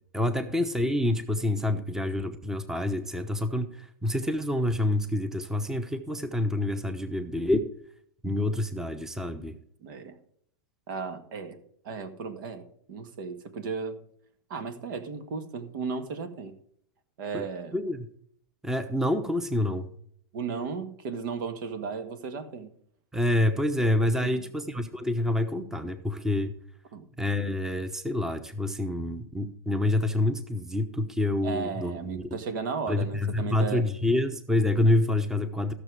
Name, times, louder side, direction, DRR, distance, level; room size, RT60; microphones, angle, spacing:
voice 1, 0.1-7.7 8.2-9.5 17.3-17.4 17.7-18.1 18.6-19.9 23.1-26.5 27.2-32.4 32.9-35.7, left 1 dB, 5° right, 9 dB, 1.0 m, -27 dB
voice 2, 9.8-10.2 10.9-11.6 11.8-14.0 14.5-16.5 17.2-17.8 20.3-22.7 24.2-24.5 26.9-27.0 31.4-33.8, right 5 dB, 65° right, 9 dB, 1.8 m, -35 dB
14.5 x 6.8 x 4.9 m, 0.66 s
hypercardioid pair, 115°, 12 cm